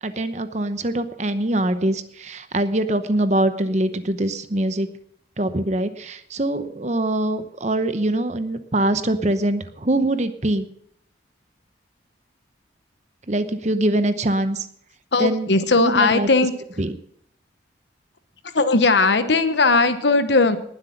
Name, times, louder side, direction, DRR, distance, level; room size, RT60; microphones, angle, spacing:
voice 1, 0.0-4.9 5.4-10.7 13.3-14.7 15.2-15.5 15.8-16.3 16.8-16.9, right 1 dB, 40° right, 11 dB, 0.9 m, -23 dB
voice 2, 15.1-16.5 18.5-20.6, left 3 dB, 70° left, 11 dB, 1.1 m, -18 dB
19.5 x 7.9 x 5.8 m, 0.67 s
head